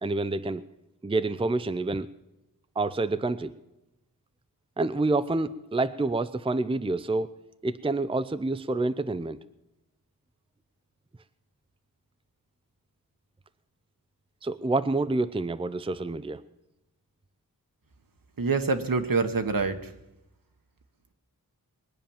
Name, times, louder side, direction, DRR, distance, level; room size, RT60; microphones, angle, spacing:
voice 1, 0.0-0.6 1.0-2.1 2.8-3.5 4.8-7.3 7.6-9.4 14.4-16.4, right 2 dB, 15° right, 12 dB, 0.5 m, -28 dB
voice 2, 18.4-19.9, right 4 dB, 65° right, 7 dB, 1.3 m, -26 dB
21.5 x 9.0 x 7.2 m, 0.93 s
wide cardioid pair, 80°, 36 cm